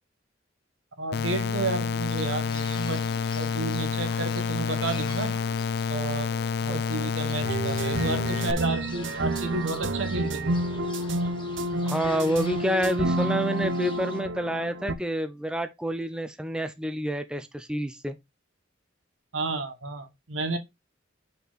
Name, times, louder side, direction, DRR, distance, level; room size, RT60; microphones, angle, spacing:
voice 1, 1.0-3.1 3.3-5.4 5.9-6.3 6.6-10.6 19.3-20.6, right 3 dB, 80° right, 1.2 m, -31 dB
sound 1, 1.1-8.5, left 5 dB, 55° left, 0.4 m, -29 dB
sound 2, 1.9-14.2, left 3 dB, 25° left, 1.0 m, -45 dB
sound 3, 7.4-14.9, right 1 dB, 65° right, 0.7 m, -29 dB
voice 2, 11.8-18.2, equal, 5° right, 0.4 m, -28 dB
5.5 x 4.3 x 3.9 m
head